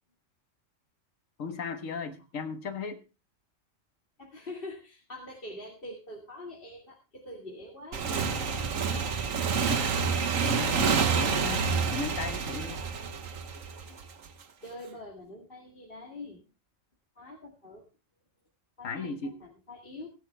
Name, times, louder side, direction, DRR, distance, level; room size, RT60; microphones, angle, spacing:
voice 1, 1.4-3.0 10.4-12.8 18.8-19.4, left 4 dB, 90° left, 9 dB, 1.8 m, -36 dB
voice 2, 4.2-8.9 9.7-10.1 11.2-11.7 13.8-14.0 14.6-16.4 17.2-17.9 18.8-19.1 19.4-20.1, left 1 dB, 45° left, -2 dB, 2.4 m, -45 dB
Motorcycle / Engine, 7.9-14.3, right 5 dB, 80° right, 1.5 m, -28 dB
16.5 x 10.5 x 3.3 m, 0.29 s
omnidirectional pair, 1.3 m